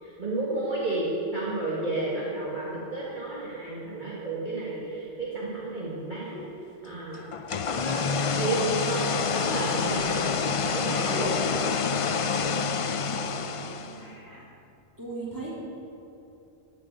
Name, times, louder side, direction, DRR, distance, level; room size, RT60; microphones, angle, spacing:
voice 1, 0.0-6.4 6.8-7.3 7.6-10.2 10.6-11.3, right 2 dB, 45° right, -7 dB, 2.1 m, -32 dB
sound 1, 7.3-14.1, left 5 dB, 50° left, 0.4 m, -27 dB
voice 2, 12.8-14.5 15.0-15.5, right 3 dB, 15° right, -6 dB, 3.5 m, -40 dB
15.0 x 10.0 x 6.4 m, 2.8 s
omnidirectional pair, 1.2 m